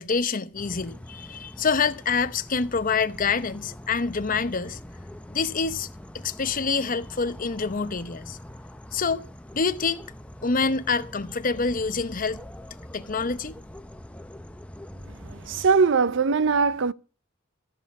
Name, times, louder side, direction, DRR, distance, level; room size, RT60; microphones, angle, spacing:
voice 1, 0.0-4.8 5.3-5.9 6.2-8.4 8.9-9.2 9.5-10.0 10.4-12.4 12.9-13.6, left 5 dB, 45° left, 0.8 m, -26 dB
sound 1, 0.6-15.7, left 1 dB, 5° left, 0.6 m, -43 dB
voice 2, 15.2-16.9, right 5 dB, 65° right, 0.6 m, -21 dB
14.0 x 7.4 x 8.3 m
head